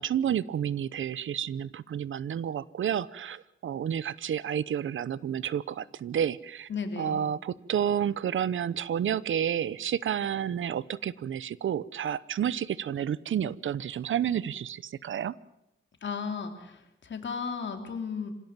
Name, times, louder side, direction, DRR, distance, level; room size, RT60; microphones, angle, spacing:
voice 1, 0.0-6.7 7.0-15.4, right 9 dB, 80° right, 19 dB, 0.7 m, -30 dB
voice 2, 6.7-7.2 16.0-18.3, left 5 dB, 65° left, 5 dB, 3.3 m, -35 dB
26.0 x 16.5 x 7.4 m, 0.87 s
wide cardioid pair, 95°, 20 cm